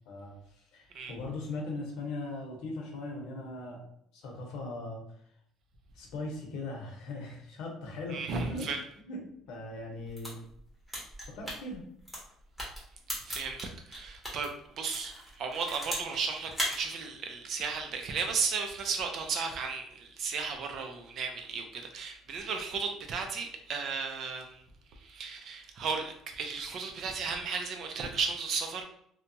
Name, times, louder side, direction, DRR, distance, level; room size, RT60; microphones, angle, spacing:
voice 1, 0.1-3.8 4.1-5.0 5.9-8.7 9.0-9.2 9.5-10.4 11.3-11.8, left 2 dB, 80° left, 0 dB, 0.8 m, -39 dB
voice 2, 8.1-8.8 13.2-24.6 24.9-28.8, right 5 dB, 55° right, 4 dB, 0.5 m, -35 dB
sound 1, 10.0-14.5 14.9-16.2 16.5-16.8, equal, 5° left, 1.1 m, -37 dB
2.8 x 2.2 x 2.6 m, 0.69 s
cardioid pair, 120°, 0 cm